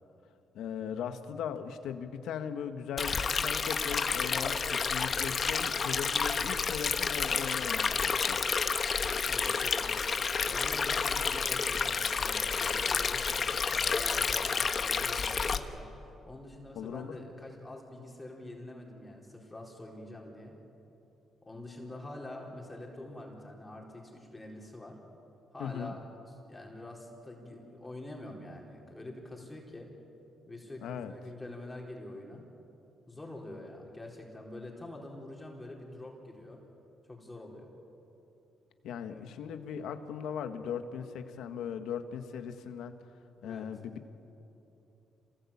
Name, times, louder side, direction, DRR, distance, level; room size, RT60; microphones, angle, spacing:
voice 1, 0.5-8.4 16.7-17.1 25.6-26.0 30.8-31.1 38.8-42.9 43.4-44.0, left 7 dB, 80° left, 8 dB, 1.6 m, -38 dB
Stream, 3.0-15.6, left 5 dB, 45° left, 1.3 m, -30 dB
voice 2, 9.3-10.0 10.5-20.6 21.4-25.0 25.5-29.9 30.5-32.4 33.1-36.6 37.0-37.7 39.1-39.3 43.4-43.7, left 1 dB, 15° left, -1 dB, 4.3 m, -46 dB
27.5 x 19.5 x 8.7 m, 3.0 s
cardioid pair, 90°, 0 cm